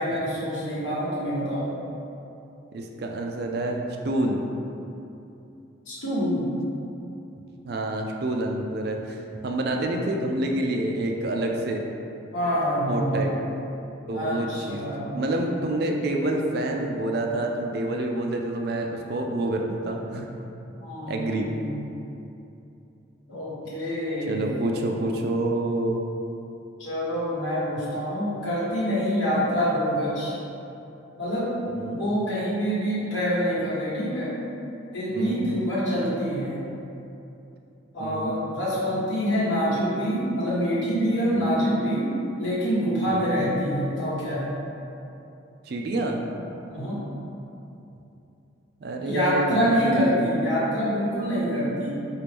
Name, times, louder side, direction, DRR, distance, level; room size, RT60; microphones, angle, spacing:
voice 1, 0.0-1.7 5.9-6.5 12.3-13.3 14.1-15.3 20.8-21.8 23.3-24.7 26.8-30.4 31.2-31.5 31.9-34.3 34.9-36.6 37.9-42.1 42.4-44.5 46.7-47.0 49.0-51.9, equal, 75° left, -9 dB, 1.3 m, -26 dB
voice 2, 2.7-4.4 7.6-11.8 12.9-13.4 14.1-14.9 15.1-20.3 21.1-21.5 24.3-26.0 31.7-32.0 35.1-35.4 38.0-38.3 41.4-41.5 43.0-43.3 45.7-46.2 48.8-50.1, right 1 dB, 50° right, 2 dB, 0.3 m, -27 dB
4.6 x 2.5 x 3.3 m, 2.8 s
head